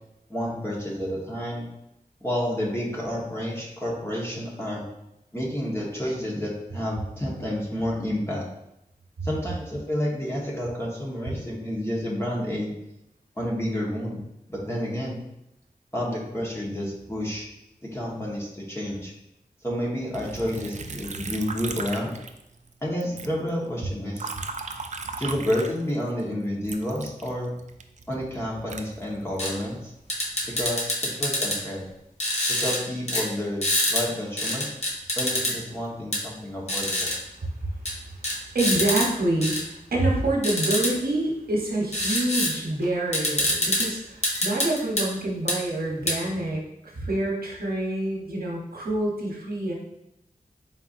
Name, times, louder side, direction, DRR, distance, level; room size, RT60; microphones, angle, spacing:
voice 1, 0.3-1.7 2.2-4.8 5.3-8.5 9.2-12.7 13.4-14.2 14.5-15.2 15.9-17.5 17.9-19.1 19.6-22.1 22.8-24.3 25.2-27.5 28.1-29.9 30.5-31.8 32.6-34.7 35.2-37.2, equal, 15° left, -4 dB, 1.2 m, -30 dB
Liquid, 20.1-22.7 23.0-26.2 26.6-29.7 30.2-30.8, right 4 dB, 50° right, 0.4 m, -37 dB
sound 1, 29.4-29.5 30.1-31.6 32.2-32.8 33.1-33.3 33.6-34.0 34.4-35.5 36.1-36.2 36.7-37.2 37.9-38.0 38.2-39.1 39.4-39.6 40.4-40.9 41.9-42.5 42.8-42.9 43.1-43.9 44.2-45.1 45.5-45.6 46.1-46.2, left 1 dB, 50° left, 1.0 m, -25 dB
voice 2, 37.4-37.7 38.5-49.7, right 1 dB, 90° right, -3 dB, 1.0 m, -27 dB
4.3 x 4.0 x 2.5 m, 0.86 s
wide cardioid pair, 65°, 15 cm